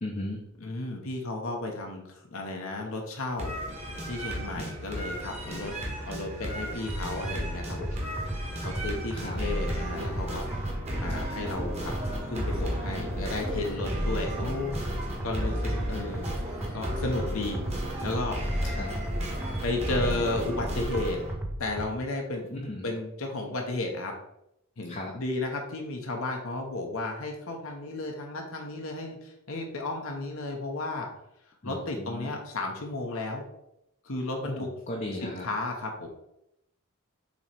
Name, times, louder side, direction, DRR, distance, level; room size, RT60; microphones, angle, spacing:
voice 1, 0.0-0.5 4.6-4.7 9.1-9.4 18.6-18.9 22.5-22.9 24.8-25.1 31.6-32.3 34.4-35.5, left 1 dB, 35° left, -1 dB, 0.7 m, -36 dB
voice 2, 0.6-2.0 2.3-3.5 4.1-5.7 6.1-7.9 8.6-10.5 11.0-11.9 12.3-16.3 16.7-17.6 18.0-18.6 19.6-21.2 21.6-22.4 22.8-24.1 24.8-31.1 31.6-33.4 34.0-34.7 35.2-36.1, left 2 dB, 70° left, 1 dB, 0.9 m, -33 dB
sound 1, 3.4-21.3, equal, 30° right, 1.5 m, -34 dB
sound 2, 6.9-21.9, right 1 dB, 5° right, 0.6 m, -35 dB
7.0 x 3.0 x 4.5 m, 0.82 s
head